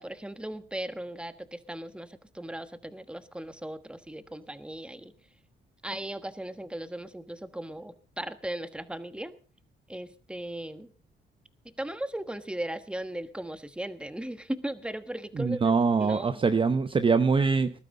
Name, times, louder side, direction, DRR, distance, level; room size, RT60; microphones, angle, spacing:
voice 1, 0.0-5.1 5.8-9.3 9.9-10.9 11.8-16.4, right 1 dB, 5° right, 11 dB, 1.3 m, -37 dB
voice 2, 15.4-17.7, right 4 dB, 25° right, 10 dB, 0.7 m, -23 dB
20.0 x 12.0 x 3.9 m, 0.36 s
cardioid pair, 90°, 20 cm